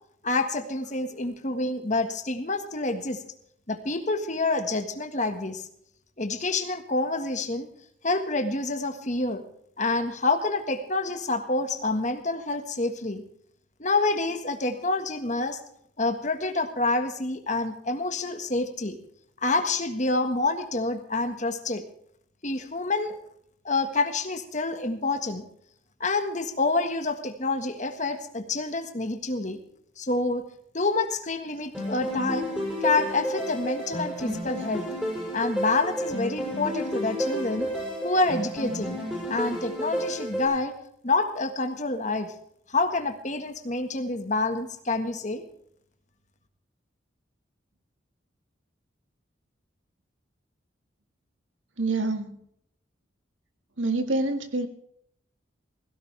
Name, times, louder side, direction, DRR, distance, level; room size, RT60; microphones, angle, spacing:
voice 1, 0.2-3.2 3.7-5.7 6.2-7.7 8.0-9.4 9.8-13.2 13.8-15.6 16.0-19.0 19.4-21.8 22.4-23.2 23.6-25.4 26.0-29.6 30.0-30.4 30.7-32.5 32.8-34.8 35.3-37.7 38.0-39.0 39.3-40.8 41.0-42.3 42.7-45.4, left 3 dB, 40° left, 6 dB, 1.6 m, -27 dB
sound 1, 31.7-40.5, equal, 5° right, 7.2 m, -31 dB
voice 2, 51.8-52.4 53.8-54.7, right 2 dB, 85° right, 6 dB, 1.9 m, -26 dB
16.5 x 16.5 x 3.4 m, 0.69 s
head